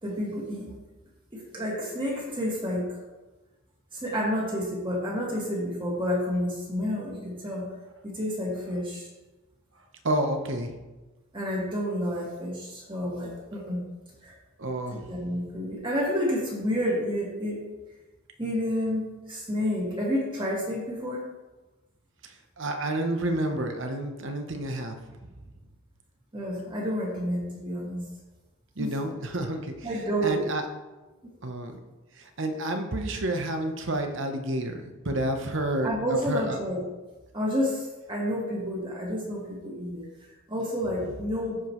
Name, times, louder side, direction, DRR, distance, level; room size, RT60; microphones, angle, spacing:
voice 1, 0.0-0.7 1.3-3.0 3.9-7.7 8.0-9.0 11.3-13.8 14.2-14.3 14.9-17.6 18.4-21.2 26.3-28.0 28.8-28.9 29.8-30.4 31.2-31.3 35.8-36.8 37.3-40.1 40.5-41.6, equal, 20° right, -4 dB, 1.9 m, -30 dB
voice 2, 10.0-10.8 14.6-15.1 22.2-25.0 28.8-29.9 30.2-30.6 31.4-31.8 32.2-36.6, right 1 dB, 60° right, 5 dB, 1.0 m, -30 dB
14.0 x 5.0 x 3.1 m, 1.1 s
head